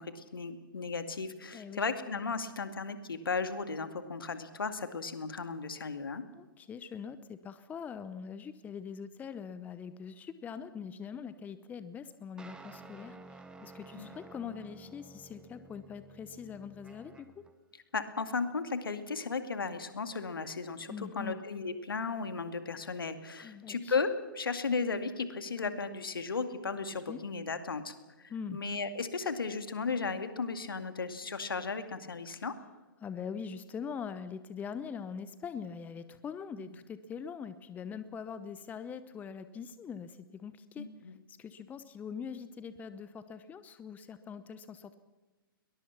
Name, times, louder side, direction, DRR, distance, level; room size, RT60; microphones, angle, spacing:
voice 1, 0.0-6.2 13.9-14.1 17.9-32.5 36.6-36.8 40.8-41.2, left 4 dB, 75° left, 9 dB, 2.3 m, -35 dB
voice 2, 6.3-17.4 20.9-21.4 23.4-23.9 27.1-27.2 28.3-28.6 33.0-40.9 41.3-45.0, left 6 dB, 15° left, 13 dB, 0.8 m, -43 dB
sound 1, 12.4-17.5, right 2 dB, 5° right, 1.6 m, -52 dB
22.0 x 20.5 x 5.9 m, 1.2 s
figure-of-eight pair, 120°, 12 cm